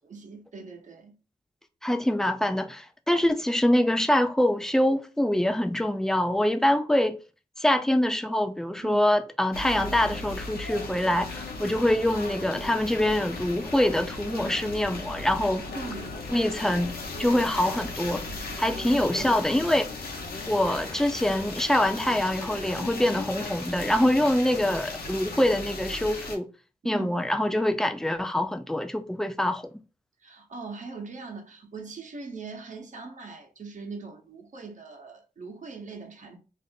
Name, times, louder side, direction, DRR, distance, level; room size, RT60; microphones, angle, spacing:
voice 1, 0.0-1.2 8.8-9.0 15.7-16.3 18.8-19.4 26.8-27.1 30.2-36.4, right 4 dB, 55° right, 0.9 m, -41 dB
voice 2, 1.8-7.2 7.6-15.6 16.3-16.9 17.2-18.2 18.6-19.9 20.5-26.5 26.8-29.7, left 1 dB, 5° left, 0.4 m, -24 dB
sound 1, 9.5-26.4, left 3 dB, 85° left, 0.8 m, -36 dB
2.6 x 2.6 x 3.7 m
wide cardioid pair, 80°, 15 cm